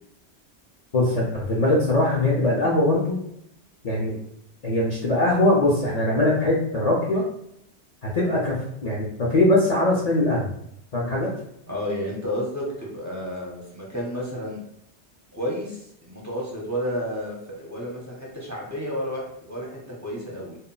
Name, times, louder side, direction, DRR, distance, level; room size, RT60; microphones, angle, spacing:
voice 1, 0.9-3.2 3.8-4.2 4.6-7.2 8.0-10.5 10.9-11.3, left 1 dB, 55° left, -4 dB, 0.4 m, -21 dB
voice 2, 11.7-14.6 15.3-20.6, equal, 25° right, -4 dB, 0.4 m, -31 dB
2.1 x 2.0 x 3.7 m, 0.74 s
omnidirectional pair, 1.1 m